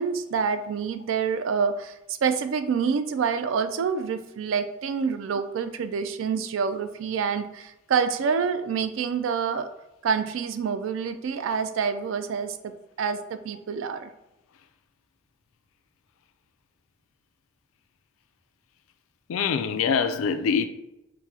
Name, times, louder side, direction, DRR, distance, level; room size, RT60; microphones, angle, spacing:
voice 1, 0.0-9.7 10.0-12.6 13.0-13.2 13.4-14.1, right 6 dB, 75° right, 0.3 m, -27 dB
voice 2, 19.3-20.6, left 6 dB, 90° left, 0.3 m, -24 dB
4.5 x 2.1 x 2.7 m
head